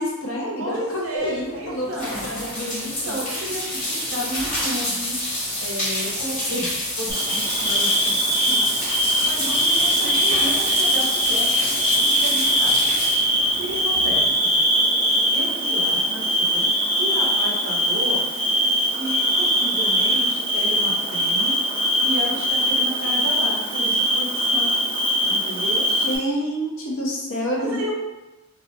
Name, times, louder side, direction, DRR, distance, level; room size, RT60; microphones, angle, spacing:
voice 1, 0.0-1.9 2.2-3.2 9.7-10.1 25.9-27.9, equal, 65° left, -2 dB, 0.6 m, -28 dB
voice 2, 0.6-2.3 2.8-5.2 5.6-11.7 12.0-12.9 13.6-14.5 15.3-16.7 17.0-18.2 18.9-21.6 22.0-24.8 25.2-25.9 27.6-27.9, equal, 70° right, -2 dB, 0.6 m, -33 dB
sound 1, 1.2-14.4, left 1 dB, 35° left, 0.9 m, -28 dB
Bird / Cricket, 7.1-26.2, equal, 20° right, 0.4 m, -21 dB
2.4 x 2.2 x 2.5 m, 1.0 s
head